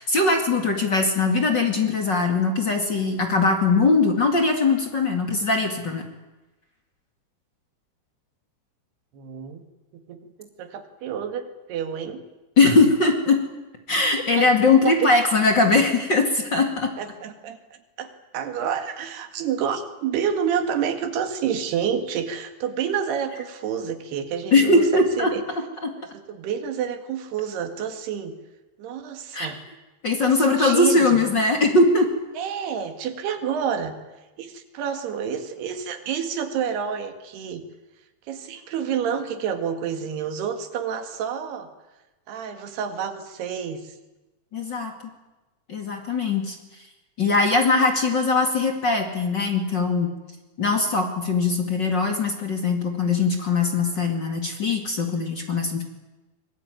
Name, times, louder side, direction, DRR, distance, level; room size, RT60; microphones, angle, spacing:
voice 1, 0.0-6.1 12.6-13.5 13.9-16.9 24.5-25.3 25.8-25.9 29.3-29.5 30.0-32.1 44.5-44.9 45.7-46.6 47.2-50.1 50.6-55.8, left 3 dB, 35° left, 4 dB, 2.2 m, -20 dB
voice 2, 9.1-9.6 9.9-12.2 14.4-15.1 17.0-17.6 18.0-25.4 26.1-28.4 28.8-29.6 30.2-31.3 32.4-34.0 34.4-37.6 38.3-41.7 42.3-44.0, right 8 dB, 85° right, 7 dB, 4.0 m, -29 dB
24.5 x 22.0 x 9.2 m, 1.1 s
omnidirectional pair, 4.5 m